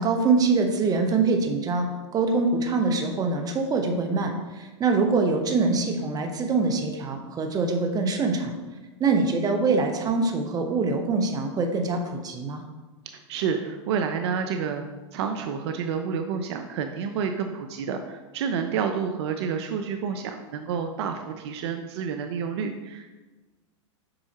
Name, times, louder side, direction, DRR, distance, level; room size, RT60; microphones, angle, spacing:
voice 1, 0.0-1.9 2.1-8.5 9.0-12.6, right 4 dB, 25° right, 4 dB, 1.0 m, -24 dB
voice 2, 13.3-14.8 15.1-23.1, right 6 dB, 60° right, 6 dB, 0.6 m, -29 dB
7.7 x 5.5 x 2.9 m, 1.2 s
hypercardioid pair, 110°, 16 cm